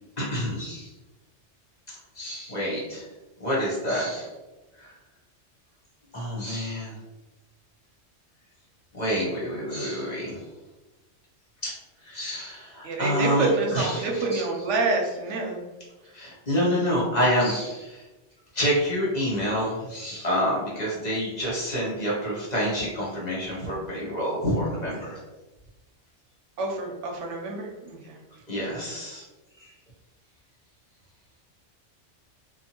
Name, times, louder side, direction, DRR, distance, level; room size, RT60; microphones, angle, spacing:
voice 1, 0.2-0.9 2.2-3.0 3.4-4.3 4.8-4.9 6.1-6.9 8.9-10.4 11.6-11.7 12.0-14.0 14.3-14.4 16.1-18.0 18.5-25.1 28.5-29.2 29.6-29.7, equal, 40° left, -6 dB, 0.8 m, -27 dB
voice 2, 12.8-15.6 26.6-28.2 28.5-28.9, right 3 dB, 80° right, 0 dB, 0.9 m, -27 dB
2.7 x 2.2 x 2.8 m, 1.1 s
omnidirectional pair, 1.2 m